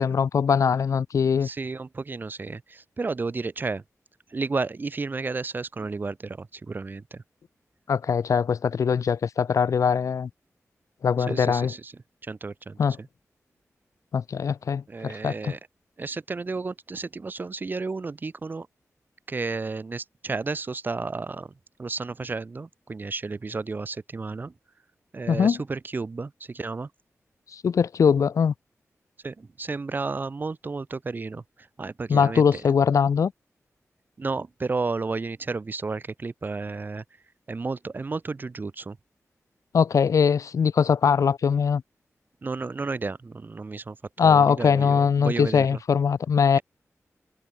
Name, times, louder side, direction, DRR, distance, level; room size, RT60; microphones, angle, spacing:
voice 1, 0.0-1.5 7.9-10.3 11.0-11.7 12.8-13.0 14.1-15.5 25.3-25.6 27.5-28.5 32.1-33.3 39.7-41.8 44.2-46.6, left 6 dB, 90° left, 1.6 m, -21 dB
voice 2, 1.4-3.8 4.3-7.2 11.3-11.9 12.2-13.1 14.9-15.6 16.0-18.7 19.3-21.5 21.8-24.5 25.1-26.9 29.2-32.6 34.2-37.0 37.5-39.0 42.4-45.8 46.5-46.6, right 3 dB, 40° right, 6.2 m, -32 dB
wide cardioid pair, 160°, 5 cm